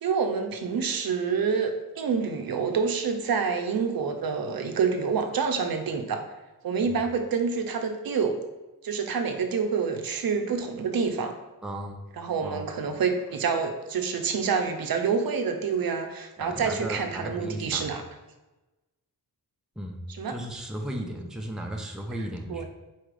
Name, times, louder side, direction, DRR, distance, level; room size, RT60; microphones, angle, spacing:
voice 1, 0.0-6.2 6.6-8.4 8.8-11.3 12.2-18.0 20.2-20.4 22.5-22.6, right 5 dB, 65° right, 5 dB, 0.6 m, -27 dB
voice 2, 11.6-12.0 12.4-12.7 16.4-17.9 19.8-20.0 20.3-22.6, right 1 dB, ahead, 1 dB, 0.5 m, -35 dB
4.1 x 2.5 x 4.7 m, 1.1 s
wide cardioid pair, 90°, 39 cm